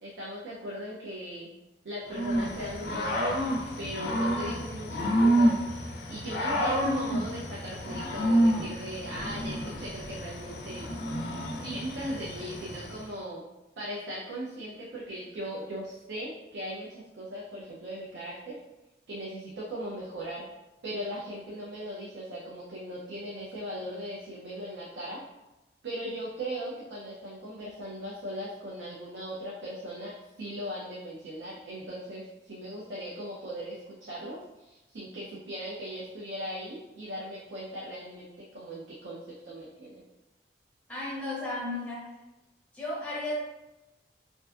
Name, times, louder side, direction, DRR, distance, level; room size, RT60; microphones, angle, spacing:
voice 1, 0.0-1.5 1.8-3.4 3.8-5.6 6.1-10.9 11.6-13.4 13.8-18.6 19.1-20.5 20.8-25.2 25.8-40.0, equal, 80° right, -5 dB, 0.5 m, -38 dB
Growling / Cricket, 2.1-13.0, equal, 65° left, 0.3 m, -29 dB
voice 2, 40.9-42.1 42.7-43.4, left 1 dB, 5° left, -6 dB, 0.6 m, -34 dB
2.5 x 2.3 x 2.3 m, 0.99 s
head